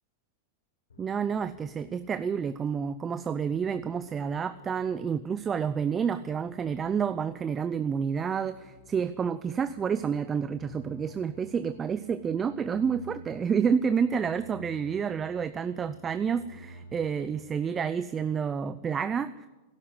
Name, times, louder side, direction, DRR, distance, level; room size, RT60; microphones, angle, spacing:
sound 1, 0.9-18.0, equal, 85° left, 1.5 m, -52 dB
voice 1, 1.0-19.5, right 6 dB, 20° right, 13 dB, 0.5 m, -29 dB
13.0 x 11.5 x 9.0 m, 1.1 s
hypercardioid pair, 115°, 0 cm